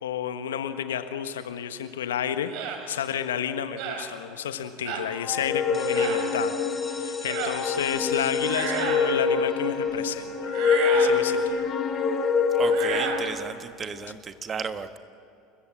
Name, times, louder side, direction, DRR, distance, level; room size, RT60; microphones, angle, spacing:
voice 1, 0.0-2.5 2.9-6.5 6.9-10.5 10.9-11.6, left 9 dB, 80° left, 10 dB, 1.3 m, -31 dB
sound 1, 2.5-2.8 3.8-4.1 4.8-5.1 5.9-6.2 7.2-7.6 8.4-9.1 10.5-11.2 12.6-13.3, right 6 dB, 60° right, 3.3 m, -32 dB
sound 2, 5.2-13.4, left 5 dB, 40° left, 2.1 m, -25 dB
sound 3, 5.7-11.4, left 3 dB, 15° left, 2.2 m, -44 dB
voice 2, 12.6-15.0, right 5 dB, 30° right, 10 dB, 1.4 m, -33 dB
29.0 x 14.5 x 7.8 m, 2.6 s
hypercardioid pair, 75°, 0 cm